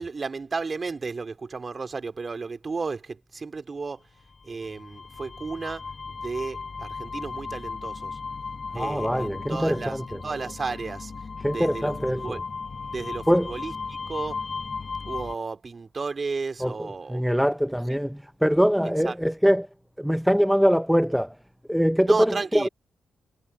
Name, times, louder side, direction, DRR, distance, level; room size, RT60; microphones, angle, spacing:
voice 1, 0.0-4.0 4.4-8.2 8.7-11.1 11.5-12.4 12.9-14.4 15.1-17.2 19.0-19.2 22.0-22.7, right 4 dB, 45° right, 2.7 m, -33 dB
sound 1, 4.3-15.4, left 4 dB, 45° left, 1.5 m, -36 dB
voice 2, 8.7-10.0 11.4-12.4 13.3-13.5 16.6-19.7 20.0-21.4 21.7-22.7, equal, ahead, 1.0 m, -23 dB
hypercardioid pair, 45°, 0 cm